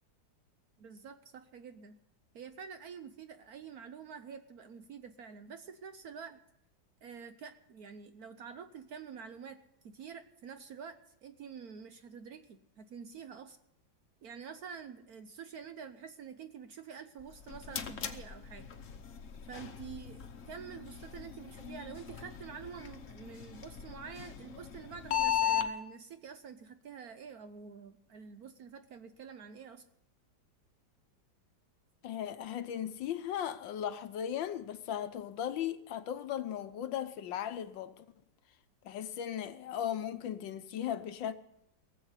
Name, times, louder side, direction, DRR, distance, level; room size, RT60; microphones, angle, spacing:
voice 1, 0.8-2.0 2.3-6.4 7.0-13.6 14.2-18.7 19.4-29.8, right 6 dB, 60° right, 1.0 m, -48 dB
sound 1, 17.2-25.7, left 9 dB, 50° left, 1.1 m, -38 dB
voice 2, 32.0-38.1 38.8-41.3, left 10 dB, 75° left, 1.5 m, -37 dB
18.0 x 7.7 x 8.1 m
omnidirectional pair, 2.2 m